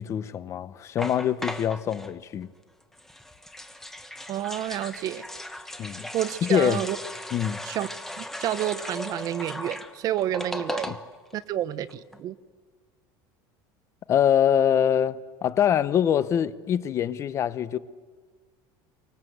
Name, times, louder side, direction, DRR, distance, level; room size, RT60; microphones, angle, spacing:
voice 1, 0.0-2.5 5.8-6.1 6.4-6.8 7.3-7.6 10.9-11.0 14.1-17.8, left 9 dB, 30° left, 0.9 m, -24 dB
sound 1, 1.0-2.1 3.0-11.3 11.6-11.7 11.9-12.2, left 1 dB, 5° left, 1.2 m, -37 dB
voice 2, 4.3-5.2 6.1-7.0 7.6-7.9 8.2-11.0 11.3-12.4, right 12 dB, 35° right, 0.9 m, -29 dB
29.5 x 24.5 x 8.0 m
cardioid pair, 170°, 10 cm